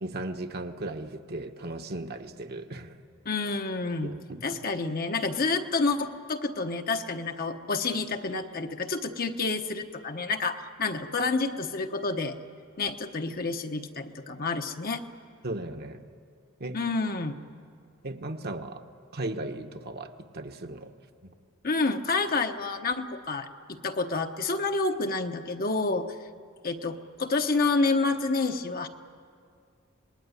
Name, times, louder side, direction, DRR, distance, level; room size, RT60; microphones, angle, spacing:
voice 1, 0.0-3.0 4.0-4.6 15.4-16.0 16.6-16.8 18.0-18.8 19.1-20.9 21.2-21.3, right 2 dB, 50° right, 5 dB, 1.3 m, -36 dB
voice 2, 3.2-4.2 4.4-12.4 12.8-15.0 16.7-17.4 21.6-26.1 26.6-28.9, left 3 dB, 45° left, 6 dB, 1.1 m, -29 dB
26.5 x 20.5 x 9.7 m, 2.3 s
head